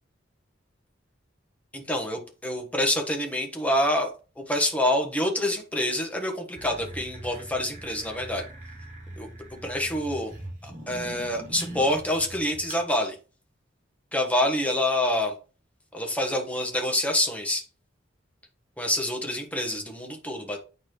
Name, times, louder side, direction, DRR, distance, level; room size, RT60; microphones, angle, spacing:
voice 1, 1.7-4.1 4.4-8.4 9.2-9.3 9.6-10.3 10.6-13.2 14.1-15.4 15.9-17.6 18.8-20.6, left 1 dB, 5° left, 2 dB, 1.4 m, -27 dB
sound 1, 6.6-12.9, right 1 dB, 40° right, 3.3 m, -42 dB
9.4 x 4.2 x 3.2 m, 0.34 s
head